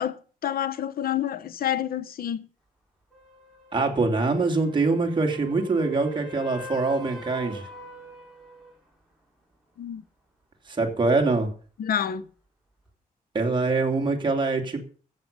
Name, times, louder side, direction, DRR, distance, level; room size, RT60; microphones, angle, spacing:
voice 1, 0.0-2.4 9.8-10.0 11.8-12.2, left 10 dB, 85° left, 0.8 m, -28 dB
sound 1, 3.1-8.8 12.9-13.0, equal, ahead, 4.8 m, -43 dB
voice 2, 3.7-7.7 10.7-11.5 13.3-14.8, right 3 dB, 30° right, 3.1 m, -24 dB
15.0 x 8.4 x 6.9 m
wide cardioid pair, 155°, 15 cm